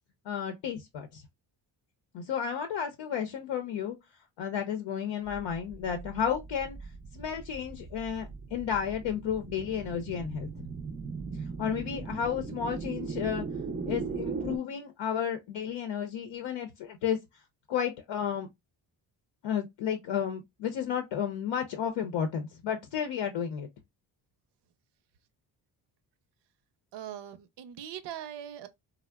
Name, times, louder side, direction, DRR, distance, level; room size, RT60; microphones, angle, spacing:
voice 1, 0.2-1.2 2.1-4.0 4.4-6.8 7.1-10.7 11.6-13.4 13.9-17.2 17.7-18.5 19.4-23.7, left 8 dB, 75° left, 0.7 m, -32 dB
sound 1, 5.2-14.6, right 4 dB, 20° right, 0.4 m, -39 dB
voice 2, 26.9-28.7, right 10 dB, 65° right, 0.6 m, -41 dB
3.5 x 2.1 x 2.2 m
cardioid pair, 80°, 45 cm